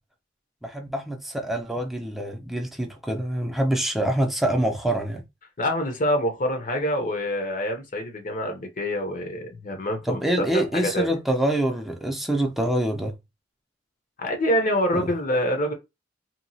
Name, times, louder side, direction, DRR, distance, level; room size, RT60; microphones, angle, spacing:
voice 1, 0.6-5.2 10.1-13.1 14.9-15.1, right 1 dB, ahead, 0.5 m, -25 dB
voice 2, 5.6-10.2 10.5-11.2 14.2-15.7, equal, 45° left, 0.7 m, -26 dB
2.8 x 2.3 x 2.7 m
head